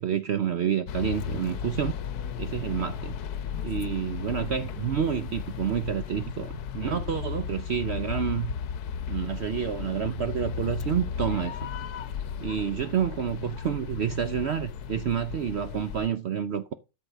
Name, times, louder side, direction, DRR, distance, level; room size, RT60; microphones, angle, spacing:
voice 1, 0.0-1.9 2.4-3.2 3.6-8.5 9.1-11.7 12.4-16.7, right 8 dB, 85° right, 0.5 m, -29 dB
sound 1, 0.9-16.1, left 7 dB, 65° left, 1.2 m, -35 dB
13.0 x 4.7 x 6.5 m
omnidirectional pair, 1.9 m